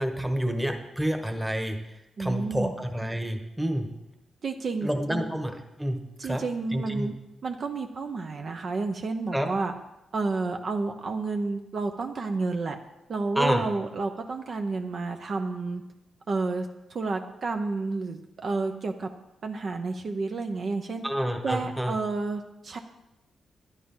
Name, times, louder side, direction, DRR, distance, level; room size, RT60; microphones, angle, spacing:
voice 1, 0.0-1.8 2.2-3.9 4.8-6.0 6.2-6.4 6.7-7.1 9.3-9.5 13.3-13.6 21.0-21.9, equal, 5° right, 4 dB, 1.3 m, -28 dB
voice 2, 2.2-2.7 4.4-5.2 6.2-7.1 7.4-9.7 10.1-12.8 13.1-15.8 16.3-19.1 19.4-21.1 21.4-22.8, right 3 dB, 45° right, 5 dB, 0.8 m, -30 dB
11.0 x 11.0 x 5.6 m, 0.94 s
wide cardioid pair, 145°, 0 cm